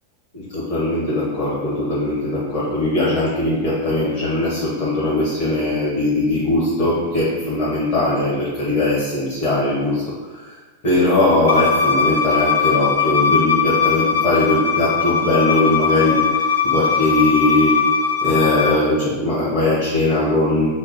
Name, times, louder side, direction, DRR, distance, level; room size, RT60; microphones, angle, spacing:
voice 1, 0.3-10.6 10.8-17.8 18.2-20.7, left 1 dB, 45° left, -8 dB, 1.1 m, -20 dB
Bowed string instrument, 11.5-18.8, left 6 dB, 65° left, 0.4 m, -20 dB
4.6 x 2.1 x 4.5 m, 1.3 s
figure-of-eight pair, 90°, 0 cm